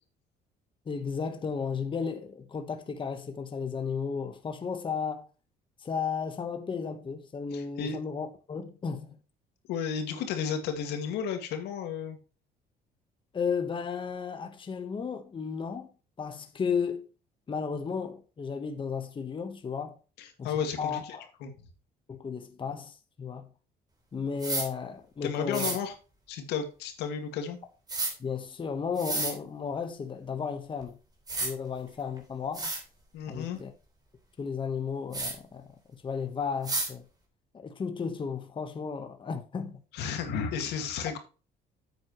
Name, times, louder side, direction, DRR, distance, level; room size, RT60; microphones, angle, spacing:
voice 1, 0.9-5.3 5.8-9.2 13.3-15.9 16.2-17.1 17.5-20.0 20.4-21.3 22.1-23.5 24.1-25.8 28.2-30.9 31.4-32.7 33.3-33.7 34.4-35.7 36.0-37.0 37.5-39.8, left 6 dB, 30° left, 1.2 m, -34 dB
voice 2, 7.5-8.0 9.7-12.2 20.2-21.0 21.4-21.5 25.2-25.9 26.3-27.6 33.1-33.6 39.9-41.2, left 7 dB, 85° left, 2.1 m, -33 dB
sound 1, 24.4-24.7 25.5-25.8 27.9-28.1 29.0-29.3 30.8-30.9 31.3-31.5 32.2-32.3 32.5-32.8 35.1-35.3 36.6-36.9, right 2 dB, 25° right, 3.4 m, -31 dB
9.2 x 8.1 x 3.1 m
cardioid pair, 110°, 17 cm